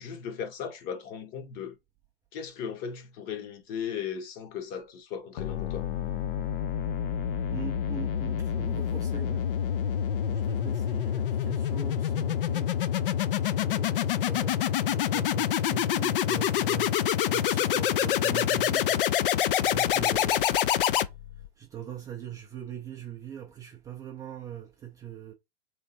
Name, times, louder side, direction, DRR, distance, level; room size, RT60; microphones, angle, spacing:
voice 1, 0.0-1.8 2.3-5.9, left 7 dB, 30° left, 0.8 m, -37 dB
sound 1, 5.4-21.5, left 10 dB, 60° left, 0.5 m, -27 dB
voice 2, 7.5-13.1 13.5-21.0 21.6-25.3, right 10 dB, 10° right, 0.4 m, -42 dB
3.3 x 3.2 x 4.0 m
hypercardioid pair, 115°, 30 cm